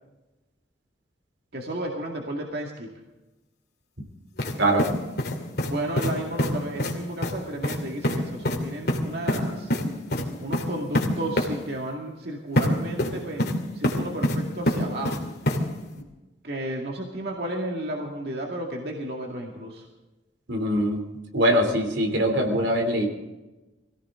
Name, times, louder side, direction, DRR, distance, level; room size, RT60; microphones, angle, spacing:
voice 1, 1.5-2.9 5.7-9.7 10.4-15.2 16.4-19.8, right 1 dB, 55° right, 0 dB, 2.1 m, -33 dB
sound 1, 4.4-4.5 4.8-5.7 6.0-6.1 6.4-6.5 6.8-6.9 7.2-7.3 7.6-7.8 8.0-8.2 8.4-8.6 8.9-9.4 9.7-9.8 10.1-10.2 10.5-10.6 10.9-11.1 11.4-11.5 12.6-12.7 13.0-13.5 13.8-14.4 14.7-15.2 15.5-15.6, left 1 dB, 55° left, 2.6 m, -24 dB
voice 2, 20.5-21.0 21.3-23.1, right 1 dB, 80° right, 4 dB, 3.1 m, -22 dB
22.5 x 16.5 x 3.8 m, 1.1 s
head